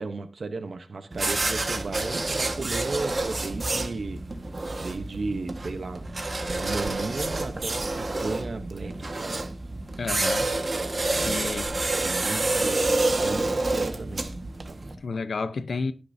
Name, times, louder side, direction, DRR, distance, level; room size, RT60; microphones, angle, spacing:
voice 1, 0.0-4.2 4.8-6.0 6.4-9.4 11.1-14.2 14.7-14.8, right 3 dB, 70° right, 0.9 m, -35 dB
sound 1, 1.1-14.9, right 2 dB, 45° right, 1.5 m, -28 dB
voice 2, 10.0-10.5 11.2-11.7 15.0-15.9, left 4 dB, 85° left, 0.7 m, -31 dB
19.5 x 6.7 x 2.7 m
wide cardioid pair, 75°, 0 cm